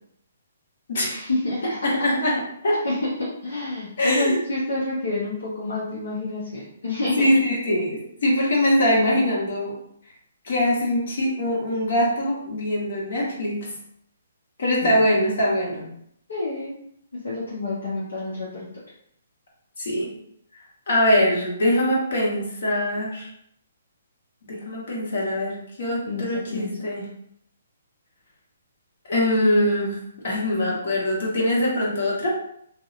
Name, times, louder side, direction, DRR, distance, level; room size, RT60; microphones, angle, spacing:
voice 1, 1.1-1.9 2.8-7.3 14.8-15.0 16.3-16.8 17.1-18.7 26.1-26.7, left 2 dB, 80° left, -7 dB, 0.7 m, -28 dB
voice 2, 1.8-2.8 4.0-4.4 7.2-9.7 10.4-13.7 14.6-15.9 19.8-20.1 20.9-23.3 24.4-27.1 29.1-30.0 30.2-32.3, left 1 dB, 60° left, -4 dB, 1.1 m, -22 dB
2.7 x 2.1 x 2.4 m, 0.71 s
figure-of-eight pair, 135°, 0 cm